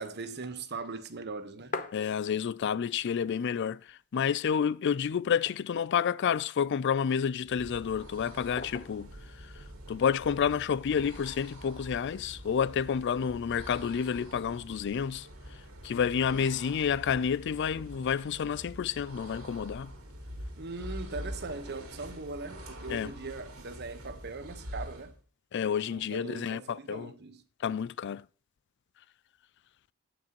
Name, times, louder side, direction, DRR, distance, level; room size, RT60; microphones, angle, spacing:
voice 1, 0.0-1.8 20.6-25.1 25.7-27.4, right 3 dB, 50° right, 1.2 m, -40 dB
sound 1, 1.2-2.7 3.1-3.2 3.4-4.2 4.6-4.7 5.2-6.0 6.7-7.4 8.6-9.1 10.2-10.8, left 4 dB, 35° left, 0.9 m, -42 dB
voice 2, 1.9-9.1 9.4-15.3 15.8-19.9 22.9-23.1 25.5-27.1 27.6-28.2, left 7 dB, 50° left, 0.3 m, -30 dB
sound 2, 7.4-25.2, equal, 70° right, 3.3 m, -45 dB
17.5 x 6.1 x 3.0 m
head